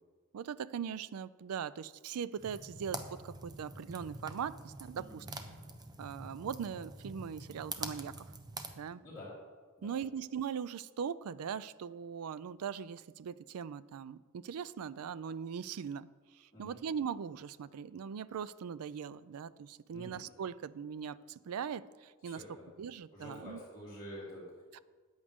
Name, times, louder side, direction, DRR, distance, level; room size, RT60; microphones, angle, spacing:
voice 1, 0.3-5.3 6.0-8.1 8.8-9.0 9.8-16.1 16.3-22.4 22.8-23.6 24.7-24.8, right 7 dB, 80° right, 18 dB, 0.4 m, -40 dB
sound 1, 2.4-8.7, right 3 dB, 20° right, 0.7 m, -45 dB
voice 2, 4.9-5.6 9.0-9.3 9.8-10.0 16.5-16.8 19.9-20.2 22.2-22.7 23.1-24.5, left 1 dB, 20° left, -7 dB, 3.3 m, -48 dB
13.5 x 9.5 x 3.6 m, 1.5 s
head